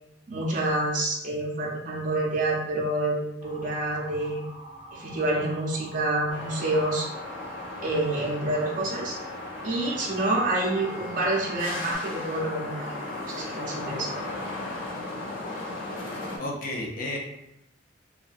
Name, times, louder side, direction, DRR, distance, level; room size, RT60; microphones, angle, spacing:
voice 1, 0.3-4.4 4.9-7.1 7.8-9.2 9.6-12.9 13.3-14.2, right 2 dB, 45° right, -3 dB, 0.5 m, -28 dB
Motor vehicle (road) / Siren, 3.4-11.9, right 1 dB, 25° right, 0.9 m, -46 dB
sound 1, 6.3-16.4, left 2 dB, 85° left, 0.7 m, -36 dB
voice 2, 16.4-17.2, left 1 dB, 45° left, -1 dB, 0.5 m, -32 dB
2.6 x 2.2 x 2.3 m, 0.86 s
head